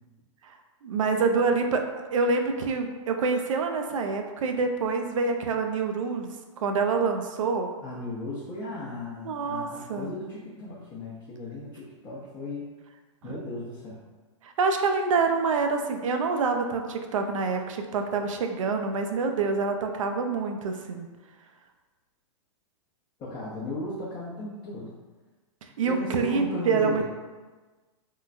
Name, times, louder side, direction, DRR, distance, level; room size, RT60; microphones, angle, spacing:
voice 1, 0.8-6.3 6.6-7.7 9.2-10.1 13.2-13.4 14.4-21.1 25.8-27.0, right 4 dB, 80° right, 5 dB, 0.4 m, -26 dB
voice 2, 7.8-12.6 13.2-14.0 23.2-24.9 25.8-27.0, left 2 dB, 30° left, -7 dB, 0.7 m, -36 dB
3.7 x 2.1 x 2.5 m, 1.3 s
hypercardioid pair, 125°, 16 cm